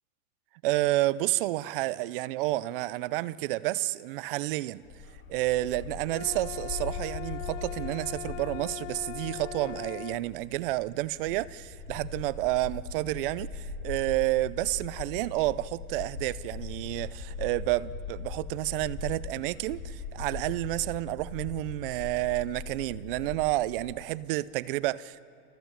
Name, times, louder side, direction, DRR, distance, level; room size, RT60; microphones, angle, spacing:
voice 1, 0.6-4.8 5.3-25.2, right 17 dB, 40° right, 0.6 m, -30 dB
Bark, 4.8-24.0, left 4 dB, 25° left, 2.8 m, -40 dB
sound 1, 6.1-10.2, left 14 dB, 55° left, 0.6 m, -40 dB
29.5 x 15.0 x 7.4 m
hypercardioid pair, 140°, 45 cm